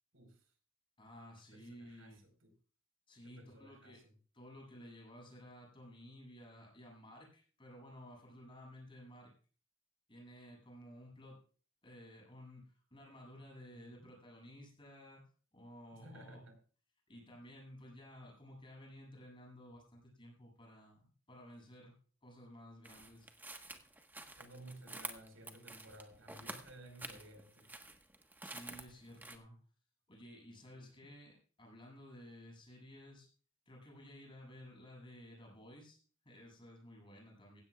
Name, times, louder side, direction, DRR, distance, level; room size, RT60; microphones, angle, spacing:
voice 1, 0.1-0.4 1.5-2.5 3.2-4.0 13.7-14.1 15.9-16.6 24.4-27.7 30.7-31.1, right 1 dB, 85° right, 5 dB, 4.6 m, -56 dB
voice 2, 1.0-2.2 3.1-4.0 4.3-9.3 10.1-11.4 11.8-15.2 15.5-16.4 17.1-21.9 22.2-23.3 28.4-29.6 30.1-33.3 33.7-36.0 36.2-37.6, equal, 25° left, -2 dB, 7.5 m, -55 dB
sound 1, 22.8-29.4, right 2 dB, 10° right, 1.3 m, -49 dB
16.0 x 16.0 x 2.4 m, 0.40 s
head